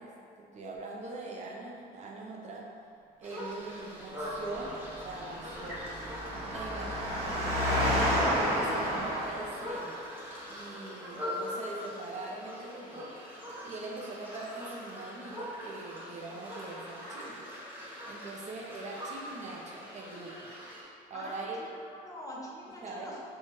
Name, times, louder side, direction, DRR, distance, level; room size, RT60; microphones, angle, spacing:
voice 1, 0.0-2.7 3.2-4.7 5.0-5.8 6.3-7.4 8.1-10.0 10.5-13.1 13.6-17.4 18.0-20.5 21.1-21.6 22.8-23.1, right 2 dB, 45° right, -2 dB, 0.6 m, -42 dB
sound 1, 3.2-20.8, equal, 10° right, 0.9 m, -42 dB
Engine, 4.3-9.9, equal, 90° right, 1.4 m, -31 dB
voice 2, 21.1-23.3, left 1 dB, 20° left, -4 dB, 0.7 m, -44 dB
4.3 x 2.3 x 3.1 m, 2.4 s
cardioid pair, 110°, 17 cm